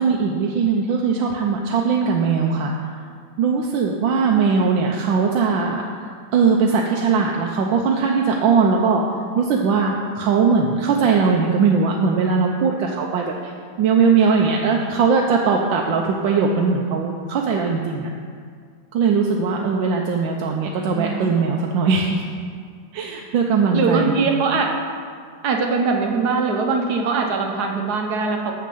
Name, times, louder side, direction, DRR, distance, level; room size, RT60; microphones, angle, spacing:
voice 1, 0.0-2.7 3.4-5.8 6.3-9.0 9.3-13.5 13.8-18.1 18.9-22.2 22.9-24.2, right 5 dB, 85° right, 0 dB, 1.4 m, -20 dB
voice 2, 20.9-21.3 23.7-24.7 25.4-28.5, right 4 dB, 60° right, 2 dB, 1.5 m, -21 dB
6.7 x 6.4 x 7.7 m, 2.1 s
omnidirectional pair, 2.0 m